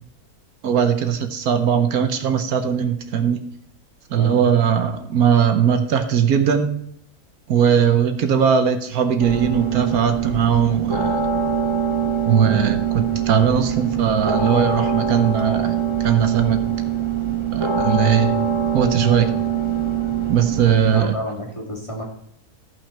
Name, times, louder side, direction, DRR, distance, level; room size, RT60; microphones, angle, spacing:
voice 1, 0.6-3.4 4.1-6.7 7.5-11.3 12.2-16.6 17.5-18.3 18.7-19.3 20.3-21.1, right 7 dB, 75° right, 8 dB, 1.3 m, -19 dB
sound 1, 9.2-21.0, right 7 dB, 20° right, 1.9 m, -23 dB
voice 2, 20.9-22.0, equal, 20° left, -2 dB, 2.3 m, -30 dB
13.5 x 5.9 x 4.3 m, 0.72 s
omnidirectional pair, 1.6 m